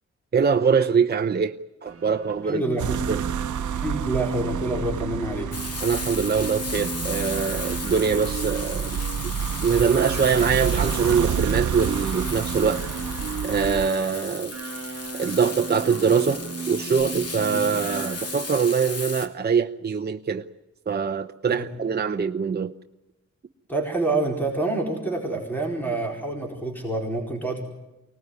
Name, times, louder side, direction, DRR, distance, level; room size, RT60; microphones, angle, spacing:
voice 1, 0.3-1.5 1.8-2.6 3.1-3.2 5.8-9.0 9.6-12.8 13.4-14.5 15.1-20.5 20.9-22.7, right 6 dB, 35° right, 0.8 m, -23 dB
sound 1, 1.9-18.6, right 5 dB, 50° right, 4.8 m, -35 dB
voice 2, 2.4-3.0 3.8-5.5 17.5-17.6 21.6-21.7 23.7-27.6, right 2 dB, 5° left, 4.5 m, -27 dB
sound 2, 2.8-13.9, right 8 dB, 80° right, 0.8 m, -30 dB
Frying (food), 5.5-19.3, left 3 dB, 55° left, 2.7 m, -35 dB
25.0 x 19.0 x 9.6 m
wide cardioid pair, 160°, 30 cm